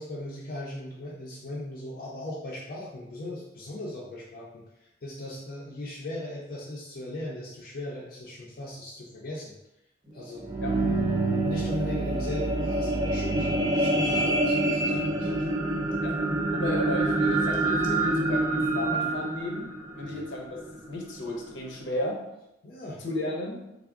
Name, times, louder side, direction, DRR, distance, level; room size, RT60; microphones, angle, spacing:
voice 1, 0.0-4.6 5.0-9.6 10.1-10.5 10.8-10.9 11.4-15.3 20.0-20.2 22.6-23.0, left 1 dB, 50° left, -5 dB, 0.5 m, -38 dB
sound 1, 10.2-20.7 21.3-21.4, right 2 dB, 20° right, 0.3 m, -26 dB
voice 2, 16.5-22.2 23.0-23.6, left 1 dB, 80° left, 0 dB, 0.7 m, -34 dB
3.4 x 2.0 x 3.5 m, 0.88 s
head